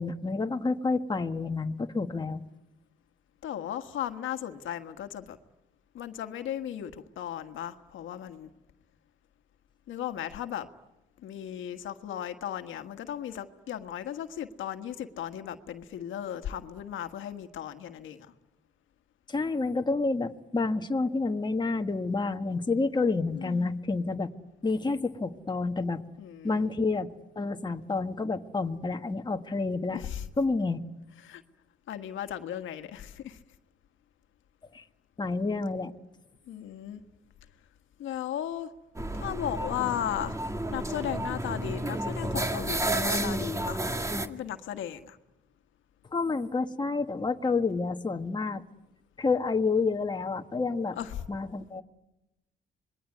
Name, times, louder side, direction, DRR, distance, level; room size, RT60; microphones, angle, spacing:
voice 1, 0.0-2.4 19.3-24.3 24.6-26.0 26.4-27.1 27.3-30.0 30.4-30.8 34.7-34.8 35.2-35.9 46.1-48.6 49.2-51.0 51.3-51.8, left 3 dB, 20° left, 6 dB, 1.5 m, -29 dB
voice 2, 3.4-5.4 5.9-8.5 9.9-10.7 11.2-18.3 23.3-23.7 26.2-26.7 29.9-30.3 31.2-31.4 31.9-33.4 36.5-37.0 38.0-38.7 39.1-40.4 40.7-43.8 44.2-45.2 51.0-51.2, left 10 dB, 75° left, 8 dB, 1.6 m, -36 dB
sound 1, 39.0-44.3, right 1 dB, 15° right, 1.8 m, -31 dB
26.0 x 21.5 x 9.5 m, 0.95 s
cardioid pair, 90°, 20 cm